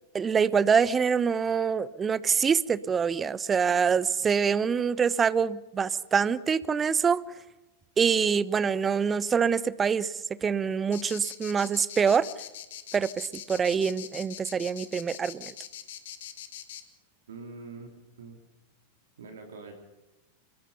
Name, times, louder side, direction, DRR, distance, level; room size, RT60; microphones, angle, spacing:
voice 1, 0.1-7.2 8.0-12.3 12.9-15.5, right 6 dB, 20° right, 19 dB, 0.7 m, -25 dB
sound 1, 10.9-16.8, left 11 dB, 55° left, 1.9 m, -42 dB
voice 2, 17.3-18.4 19.2-19.7, right 4 dB, 65° right, 3 dB, 3.1 m, -44 dB
25.5 x 21.5 x 5.6 m, 1.0 s
figure-of-eight pair, 90°, 0 cm